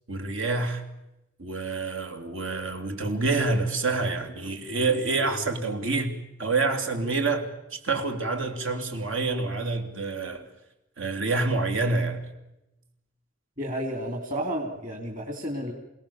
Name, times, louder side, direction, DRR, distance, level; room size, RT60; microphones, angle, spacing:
voice 1, 0.1-0.8 1.4-10.5 11.0-12.2, right 3 dB, 90° right, 3.0 m, -27 dB
voice 2, 13.6-15.7, equal, 45° right, 2.9 m, -31 dB
28.0 x 18.0 x 7.1 m
head